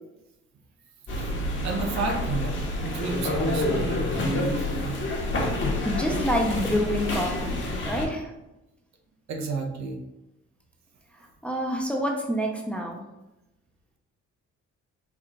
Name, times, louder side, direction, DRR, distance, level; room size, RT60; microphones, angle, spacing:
sound 1, 1.1-8.1, left 2 dB, 40° left, 1.1 m, -28 dB
voice 1, 1.6-2.6 2.8-5.0 9.3-10.0, right 4 dB, 65° right, 2 dB, 0.8 m, -31 dB
voice 2, 5.8-7.6 7.8-8.3 11.1-13.0, equal, 5° left, 0 dB, 0.6 m, -27 dB
4.6 x 2.4 x 3.6 m, 0.96 s
cardioid pair, 90°, 30 cm